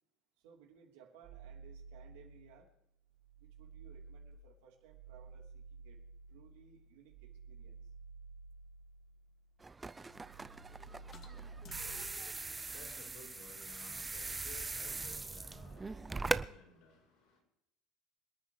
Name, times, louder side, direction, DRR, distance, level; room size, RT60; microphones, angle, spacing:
voice 1, 0.4-2.7 3.4-6.0 6.3-7.9, right 8 dB, 85° right, 0 dB, 3.5 m, -61 dB
sound 1, 1.2-2.7 3.1-9.6 9.9-12.2, right 4 dB, 65° right, 1.4 m, -53 dB
sound 2, 3.1-13.9, left 5 dB, 40° left, 1.7 m, -68 dB
sound 3, 9.6-16.5, right 3 dB, 15° right, 0.5 m, -41 dB
voice 2, 11.7-17.4, left 3 dB, 65° left, -2 dB, 6.5 m, -58 dB
27.0 x 9.3 x 3.2 m, 0.79 s
supercardioid pair, 120°, 0 cm